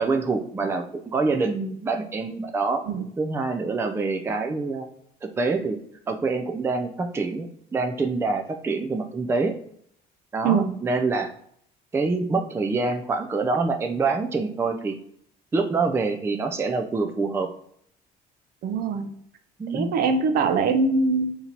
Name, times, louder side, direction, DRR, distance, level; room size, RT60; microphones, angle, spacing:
voice 1, 0.0-2.8 3.2-4.9 5.2-5.8 6.1-9.6 10.3-11.3 11.9-15.0 15.5-17.5 19.6-19.9, right 3 dB, 15° right, 5 dB, 0.3 m, -26 dB
voice 2, 10.4-10.7 18.6-19.1 19.7-21.4, right 4 dB, 65° right, 7 dB, 0.6 m, -22 dB
3.8 x 2.8 x 2.9 m, 0.67 s
cardioid pair, 110°, 17 cm